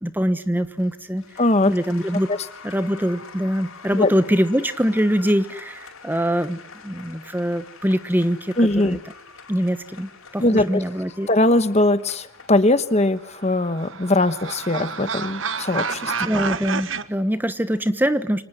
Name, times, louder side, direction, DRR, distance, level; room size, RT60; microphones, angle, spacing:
voice 1, 0.0-1.2 1.6-2.3 2.6-9.0 9.5-11.3 16.2-18.4, equal, 10° right, 11 dB, 1.2 m, -23 dB
Applause, 0.6-17.8, left 5 dB, 90° left, 5.3 m, -46 dB
voice 2, 1.4-1.7 2.3-2.4 4.0-4.1 8.6-9.0 10.4-10.8 11.3-16.1, left 2 dB, 30° left, 12 dB, 1.2 m, -20 dB
sound 1, 13.2-17.0, right 5 dB, 70° right, 1.5 m, -29 dB
29.0 x 26.0 x 8.0 m, 0.69 s
head